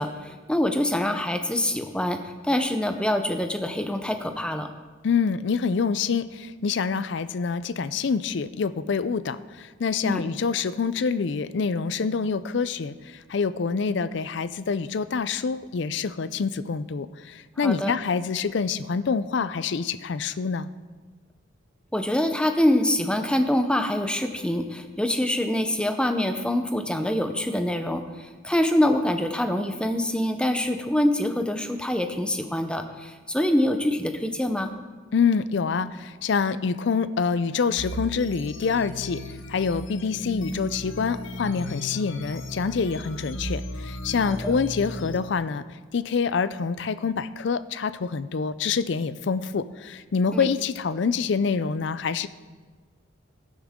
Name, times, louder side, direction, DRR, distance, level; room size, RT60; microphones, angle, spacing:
voice 1, 0.0-4.7 10.0-10.2 17.6-17.9 21.9-34.7 44.3-44.5 50.3-50.5, left 1 dB, 5° left, 6 dB, 0.6 m, -25 dB
voice 2, 5.0-20.7 35.1-39.2 39.5-45.6 45.9-52.3, left 5 dB, 60° left, 15 dB, 0.4 m, -26 dB
sound 1, 37.8-45.2, left 1 dB, 75° left, 1.0 m, -36 dB
16.5 x 10.0 x 3.7 m, 1.4 s
head